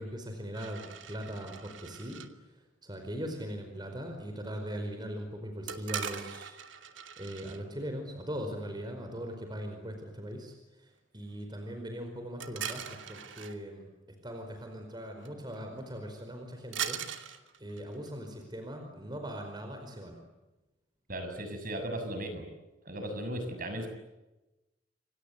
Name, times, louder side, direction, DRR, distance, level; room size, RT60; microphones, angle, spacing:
voice 1, 0.0-2.2 2.8-6.6 7.2-13.9 14.2-20.2, equal, 25° right, 4 dB, 4.9 m, -40 dB
sound 1, 0.5-2.3 5.7-7.6 12.4-13.6 15.2-15.3 15.5-15.8 16.7-18.2, right 8 dB, 85° right, 2.6 m, -40 dB
voice 2, 21.1-22.5 22.9-23.9, right 1 dB, 50° right, 6 dB, 6.8 m, -36 dB
28.5 x 25.0 x 8.3 m, 1.0 s
head